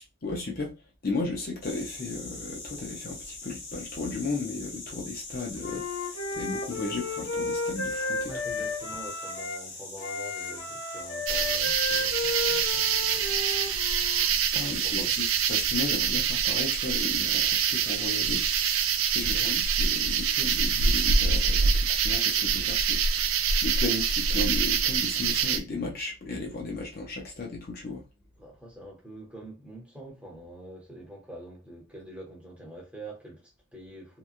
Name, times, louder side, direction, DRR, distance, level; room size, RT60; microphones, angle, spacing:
voice 1, 0.2-0.7 1.0-5.9 6.3-8.3 14.5-18.4 19.1-23.2 23.6-28.0, left 3 dB, 45° left, 0.5 m, -35 dB
sound 1, 1.6-21.1, left 3 dB, 65° left, 1.5 m, -43 dB
Wind instrument woodwind instrument, 5.6-9.7 10.0-14.2, left 3 dB, 85° left, 1.1 m, -33 dB
voice 2, 8.2-13.4 14.8-15.1 19.1-19.5 28.4-34.2, right 1 dB, 5° right, 0.9 m, -45 dB
sound 2, 11.3-25.6, right 6 dB, 75° right, 0.4 m, -25 dB
2.9 x 2.3 x 2.5 m
head